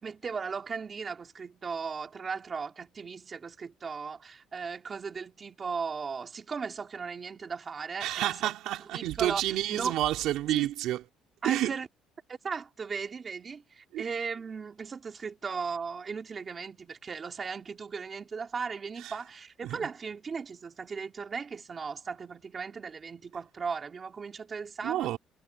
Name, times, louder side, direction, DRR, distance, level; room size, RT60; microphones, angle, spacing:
voice 1, 0.0-8.5 8.9-9.4 9.7-9.9 10.5-10.7 11.4-11.9 12.3-25.2, right 5 dB, 25° right, 3.6 m, -37 dB
voice 2, 8.0-11.0 11.4-11.8 13.9-14.1 19.0-19.1 19.6-19.9 24.8-25.2, right 14 dB, 65° right, 3.5 m, -29 dB
cardioid pair, 165°, 0 cm